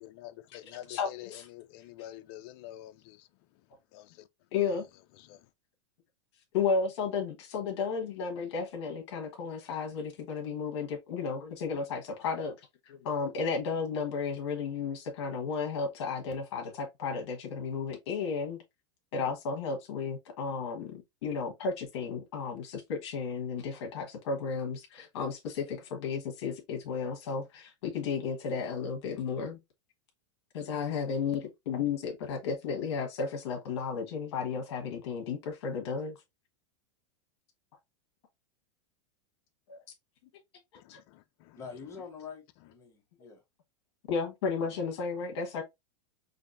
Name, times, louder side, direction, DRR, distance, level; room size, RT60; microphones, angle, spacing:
voice 1, 0.0-3.3 3.9-4.3 5.2-5.5 40.7-41.6, left 14 dB, 50° left, 0.5 m, -47 dB
voice 2, 0.9-1.5 4.5-4.8 6.5-12.5 12.9-18.6 19.1-29.6 30.5-36.2 39.7-39.8 40.9-41.0 44.1-45.6, left 5 dB, 70° left, 1.3 m, -33 dB
voice 3, 41.5-42.4 42.7-43.4 44.6-44.8, left 5 dB, 20° left, 1.5 m, -45 dB
5.0 x 2.7 x 2.6 m
supercardioid pair, 140°, 15 cm